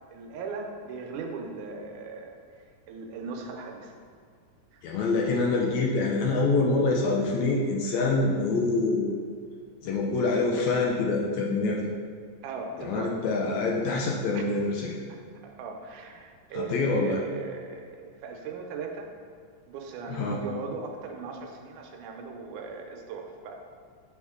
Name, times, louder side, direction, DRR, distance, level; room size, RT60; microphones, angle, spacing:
voice 1, 0.1-3.9 4.7-5.0 12.4-13.2 14.3-14.5 15.1-19.1 19.7-23.6, right 4 dB, 80° right, 2 dB, 2.1 m, -38 dB
voice 2, 4.8-9.1 9.8-11.9 12.8-14.9 16.5-17.2 20.1-20.4, left 3 dB, 75° left, -2 dB, 1.7 m, -26 dB
7.7 x 4.3 x 3.6 m, 2.1 s
omnidirectional pair, 3.5 m